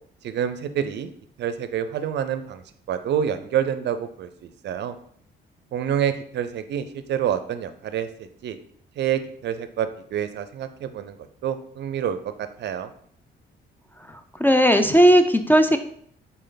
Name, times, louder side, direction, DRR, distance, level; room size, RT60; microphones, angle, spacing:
voice 1, 0.2-1.1 1.4-2.6 2.9-5.0 5.7-8.6 9.0-11.2 11.4-12.9, right 9 dB, 60° right, 11 dB, 0.4 m, -27 dB
voice 2, 14.1-15.8, equal, 10° left, 8 dB, 0.3 m, -17 dB
4.1 x 3.2 x 3.9 m, 0.63 s
cardioid pair, 90°, 20 cm